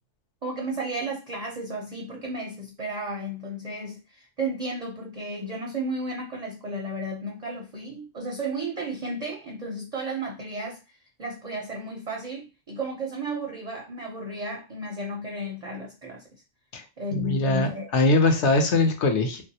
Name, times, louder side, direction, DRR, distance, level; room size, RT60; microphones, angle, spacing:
voice 1, 0.4-16.4 17.0-17.9, right 1 dB, 50° right, 0.5 m, -33 dB
voice 2, 17.1-19.4, left 2 dB, 65° left, 1.0 m, -22 dB
3.2 x 2.6 x 2.7 m
omnidirectional pair, 1.3 m